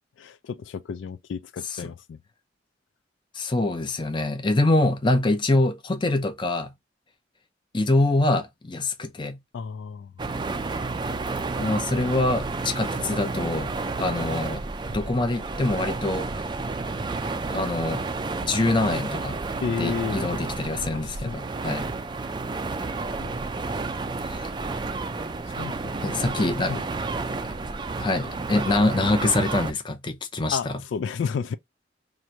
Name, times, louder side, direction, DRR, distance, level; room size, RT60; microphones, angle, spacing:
voice 1, 0.2-2.2 9.5-10.1 19.6-20.2 20.9-21.4 23.2-23.3 25.4-25.9 26.3-26.8 30.5-31.6, left 6 dB, 80° left, 0.3 m, -32 dB
voice 2, 3.3-6.7 7.7-9.4 11.6-13.7 14.0-16.4 17.5-18.0 18.4-19.4 19.8-21.9 24.2-24.5 26.0-26.7 27.4-27.6 28.0-30.7, left 2 dB, 25° left, 0.6 m, -25 dB
sound 1, 10.2-29.7, right 3 dB, 25° right, 0.4 m, -31 dB
3.0 x 2.5 x 4.2 m
head